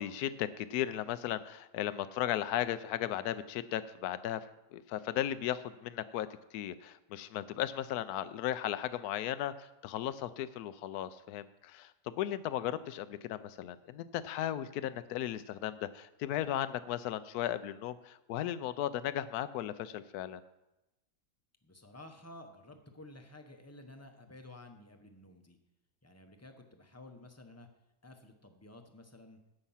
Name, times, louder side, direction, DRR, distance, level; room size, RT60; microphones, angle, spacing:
voice 1, 0.0-4.4 4.7-20.4, left 11 dB, 75° left, 14 dB, 1.1 m, -36 dB
voice 2, 21.6-25.6 26.0-27.7 28.0-29.4, left 1 dB, 15° left, 5 dB, 0.7 m, -53 dB
15.5 x 5.9 x 5.7 m, 0.96 s
omnidirectional pair, 1.7 m